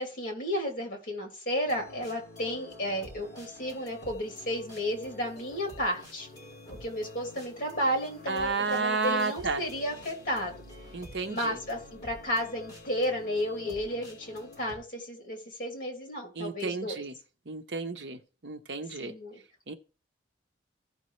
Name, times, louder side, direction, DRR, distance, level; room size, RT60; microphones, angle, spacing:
voice 1, 0.0-6.3 6.8-10.5 11.3-17.0 19.0-19.4, equal, 50° left, 2.6 m, -33 dB
Good Vibe Background Music, 1.6-14.8, left 1 dB, 20° left, 3.9 m, -48 dB
voice 2, 8.3-9.6 10.9-11.6 16.4-17.1 17.5-19.1 19.7-19.8, right 4 dB, 70° right, 0.8 m, -32 dB
16.0 x 5.4 x 3.1 m
head